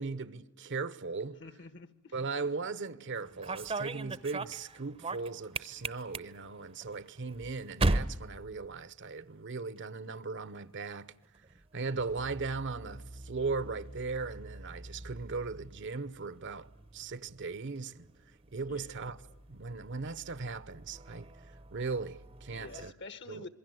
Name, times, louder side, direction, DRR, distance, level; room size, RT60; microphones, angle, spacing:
voice 1, 0.0-1.4 2.1-11.1 11.7-16.7 16.9-18.1 18.5-19.2 19.5-21.3 21.7-22.9 23.3-23.5, right 4 dB, 60° right, 0.9 m, -38 dB
voice 2, 1.4-2.1 18.7-18.9 22.5-23.5, left 3 dB, 55° left, 1.4 m, -48 dB
sound 1, 3.1-9.3 9.6-10.2 11.2-22.9, right 2 dB, 30° right, 0.8 m, -40 dB
27.0 x 22.5 x 7.8 m
head